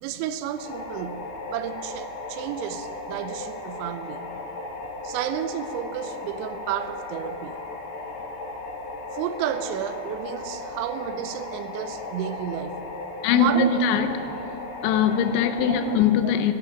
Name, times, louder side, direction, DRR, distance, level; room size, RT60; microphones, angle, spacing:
voice 1, 0.0-4.3 5.0-7.6 9.1-12.8 13.4-13.8 15.7-16.3, right 9 dB, 90° right, 11 dB, 3.0 m, -31 dB
sound 1, 0.6-16.0, left 2 dB, 75° left, 4.3 m, -36 dB
voice 2, 14.8-16.5, left 10 dB, 90° left, 9 dB, 3.1 m, -21 dB
11.0 x 9.7 x 9.3 m, 3.0 s
omnidirectional pair, 5.2 m